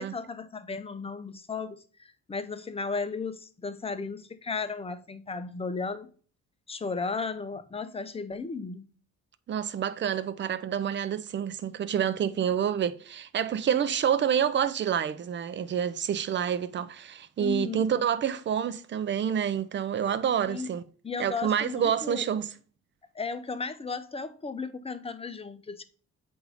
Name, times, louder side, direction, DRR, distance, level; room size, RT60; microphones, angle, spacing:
voice 1, 0.0-6.1 6.7-8.9 17.4-17.8 20.5-20.7 21.0-22.2 23.1-25.8, left 4 dB, 20° left, 0.6 m, -35 dB
voice 2, 9.5-20.8 21.2-22.5, right 8 dB, 40° right, 0.5 m, -28 dB
7.9 x 2.7 x 4.9 m
cardioid pair, 90°, 30 cm